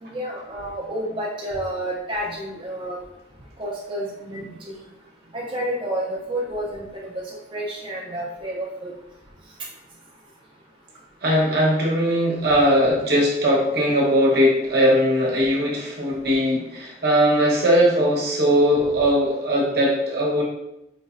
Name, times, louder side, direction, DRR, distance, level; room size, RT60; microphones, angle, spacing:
voice 1, 0.0-3.0 3.6-4.7 5.3-8.9 13.8-13.9, right 1 dB, 30° right, -4 dB, 0.6 m, -30 dB
voice 2, 11.2-20.4, equal, 65° right, -3 dB, 1.2 m, -19 dB
5.2 x 3.0 x 2.6 m, 0.88 s
head